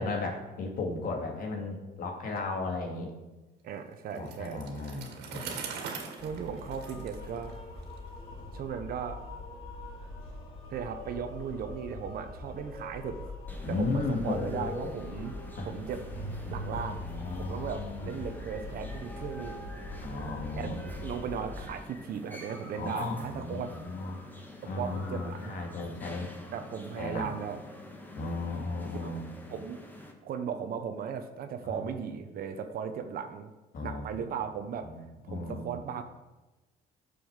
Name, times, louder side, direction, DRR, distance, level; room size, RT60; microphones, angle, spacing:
voice 1, 0.0-3.1 4.2-5.6 13.6-14.9 15.6-15.7 17.0-18.2 20.0-20.9 22.7-24.2 24.6-26.3 27.0-27.3 28.1-29.2 31.6-31.8 33.7-34.2 34.8-35.8, left 3 dB, 60° left, 1 dB, 2.4 m, -35 dB
voice 2, 3.6-4.6 6.2-7.6 8.5-9.2 10.7-13.3 13.7-15.4 15.6-16.0 16.4-17.1 17.4-19.6 20.5-23.7 24.8-25.5 26.5-27.6 28.9-29.1 29.5-29.9 30.2-33.5 33.8-34.9 35.2-36.0, right 7 dB, 60° right, 7 dB, 1.0 m, -37 dB
Bicycle, 4.1-8.0, right 6 dB, 80° right, 2.1 m, -42 dB
sound 1, 6.2-21.7, left 2 dB, 35° left, 4.4 m, -42 dB
sound 2, 13.5-30.1, left 1 dB, 10° left, 1.6 m, -48 dB
9.9 x 7.0 x 7.2 m, 1.1 s
cardioid pair, 110°, 17 cm